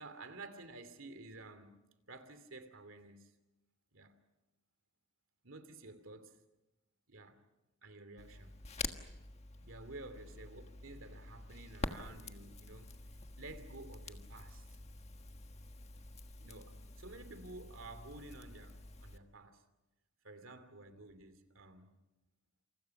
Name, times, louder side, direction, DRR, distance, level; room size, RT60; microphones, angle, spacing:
voice 1, 0.0-1.7 2.1-3.3 3.9-4.2 5.4-6.4 7.1-7.4 7.8-8.6 9.6-13.0 13.4-14.7 16.4-19.6 20.2-22.0, right 2 dB, 65° right, 2.7 m, -52 dB
Crackle, 8.2-19.2, left 3 dB, 30° left, 1.5 m, -47 dB
28.0 x 28.0 x 5.9 m
head